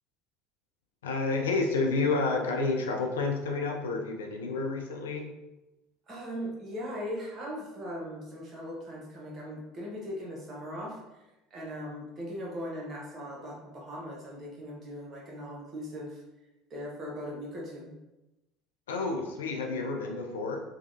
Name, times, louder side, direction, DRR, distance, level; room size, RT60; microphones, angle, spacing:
voice 1, 1.0-5.3 18.9-20.6, left 3 dB, 75° left, 2 dB, 0.4 m, -30 dB
voice 2, 6.1-11.0 11.5-16.2 16.7-17.9, equal, 35° right, -3 dB, 1.0 m, -39 dB
3.1 x 2.3 x 2.6 m, 0.99 s
figure-of-eight pair, 65°, 0 cm